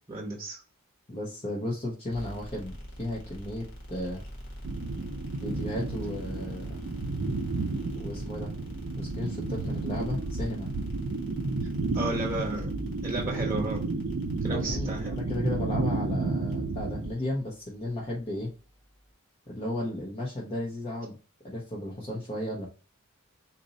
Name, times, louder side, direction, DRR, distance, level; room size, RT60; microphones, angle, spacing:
voice 1, 0.1-0.6 11.9-12.7 13.0-13.8 14.4-15.1, right 2 dB, 15° right, -1 dB, 1.0 m, -33 dB
voice 2, 1.1-4.2 5.3-6.8 7.9-8.5 9.0-10.7 12.6-12.8 13.3-13.7 14.5-18.5 19.5-21.1 21.4-22.7, left 1 dB, 30° left, -4 dB, 0.9 m, -34 dB
sound 1, 2.1-19.1, equal, 55° left, 1.5 m, -45 dB
sound 2, 4.6-17.1, right 3 dB, 55° right, 0.5 m, -32 dB
4.0 x 2.6 x 3.9 m, 0.35 s
head